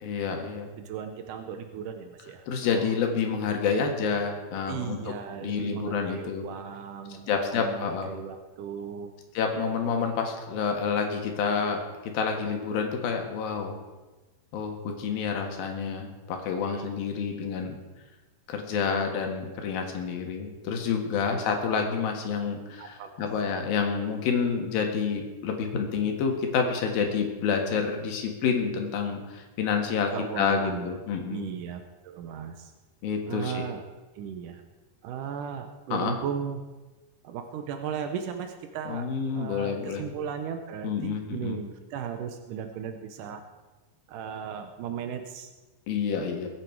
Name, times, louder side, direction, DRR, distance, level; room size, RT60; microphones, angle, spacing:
voice 1, 0.0-0.7 2.5-6.4 7.3-8.1 9.3-13.8 14.5-17.8 18.5-30.1 30.4-31.5 33.0-33.6 35.9-36.2 38.9-40.0 40.8-41.6 45.9-46.5, left 6 dB, 65° left, 3 dB, 3.3 m, -28 dB
voice 2, 0.8-2.5 2.7-3.0 4.7-9.1 9.5-9.7 16.6-16.9 21.3-21.4 22.8-23.1 30.1-30.9 31.3-32.7 33.3-33.8 34.2-34.6 35.0-36.6 37.2-39.1 39.4-43.4 44.1-45.5, right 8 dB, 85° right, 6 dB, 1.8 m, -36 dB
22.0 x 9.4 x 4.7 m, 1.2 s
omnidirectional pair, 5.0 m